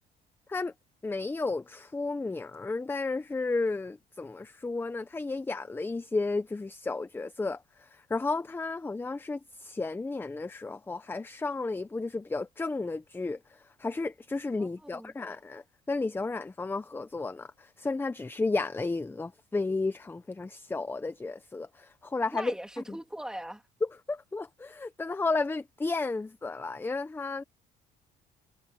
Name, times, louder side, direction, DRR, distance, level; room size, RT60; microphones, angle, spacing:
voice 1, 1.0-23.0 24.1-27.4, left 3 dB, 15° left, 0.7 m, -33 dB
voice 2, 14.6-15.1 22.3-23.6, right 1 dB, 5° right, 2.2 m, -40 dB
cardioid pair, 110°, 17 cm